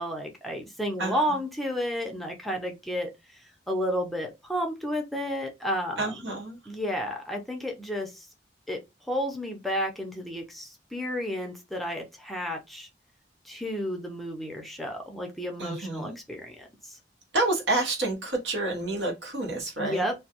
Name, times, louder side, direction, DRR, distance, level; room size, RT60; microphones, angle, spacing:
voice 1, 0.0-3.1 3.7-6.2 6.7-8.3 8.7-8.8 9.1-12.9 13.4-17.0 19.8-20.1, equal, ahead, 0.5 m, -32 dB
voice 2, 6.0-6.6 15.6-16.2 17.3-20.0, right 2 dB, 80° right, 0.9 m, -29 dB
2.3 x 2.2 x 2.8 m
head